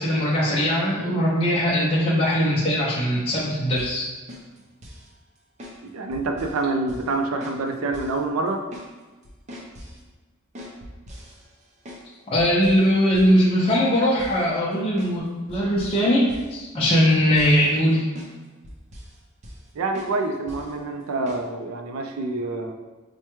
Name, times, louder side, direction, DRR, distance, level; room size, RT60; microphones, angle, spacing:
voice 1, 0.0-4.1 12.3-18.0, equal, 30° left, -8 dB, 0.6 m, -20 dB
sound 1, 3.8-4.0 4.3-5.1 5.6-5.8 6.1-6.6 6.9-7.1 7.4-7.6 7.9-8.2 8.5-8.9 9.2-10.0 10.6-12.1 12.4-12.9 13.1-13.4 13.7-13.9 14.2-14.4 15.0-15.2 15.5-16.0 16.3-16.5 16.8-17.9 18.2-18.3 18.6-19.2 19.4-19.7 19.9-20.2 20.5-20.7 21.3-21.4, equal, 35° right, 0.5 m, -41 dB
voice 2, 5.8-8.6 19.7-22.7, right 3 dB, 85° right, 4 dB, 0.4 m, -27 dB
4.6 x 2.2 x 3.0 m, 1.2 s
head